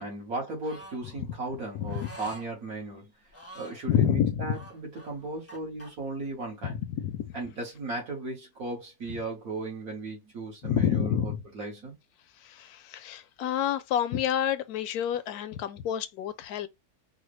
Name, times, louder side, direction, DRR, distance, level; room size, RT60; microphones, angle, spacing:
voice 1, 0.0-3.1 3.6-6.8 7.3-11.9, right 2 dB, 75° right, 2.1 m, -36 dB
sound 1, 0.6-1.0 1.9-2.5 3.3-3.8 4.5-5.9, right 1 dB, 15° left, 0.5 m, -46 dB
voice 2, 3.9-4.5 7.0-7.3 10.6-11.4 12.5-16.7, left 9 dB, 85° left, 1.1 m, -28 dB
4.8 x 2.2 x 3.1 m
omnidirectional pair, 1.6 m